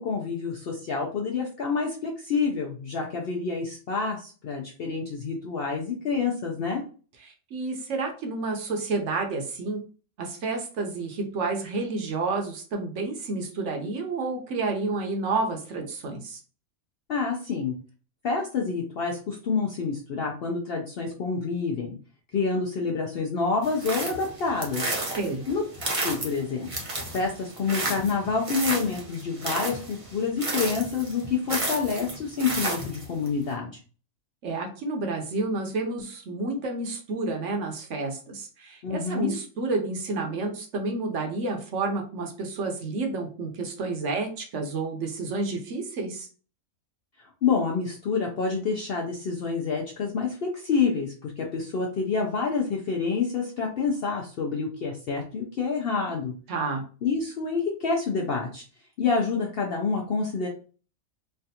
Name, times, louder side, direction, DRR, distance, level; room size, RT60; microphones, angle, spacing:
voice 1, 0.0-6.8 17.1-17.7 18.2-22.0 22.3-24.8 25.5-25.6 26.0-26.7 27.1-33.7 38.8-39.4 47.4-56.3 57.0-58.6 59.0-60.5, left 5 dB, 65° left, 0 dB, 0.6 m, -28 dB
voice 2, 7.2-9.8 10.2-16.4 25.2-25.4 34.4-46.3 56.5-56.8, right 3 dB, 65° right, 3 dB, 0.9 m, -30 dB
sound 1, 23.6-33.3, right 2 dB, 30° right, 0.7 m, -32 dB
3.3 x 2.3 x 2.7 m, 0.38 s
omnidirectional pair, 1.5 m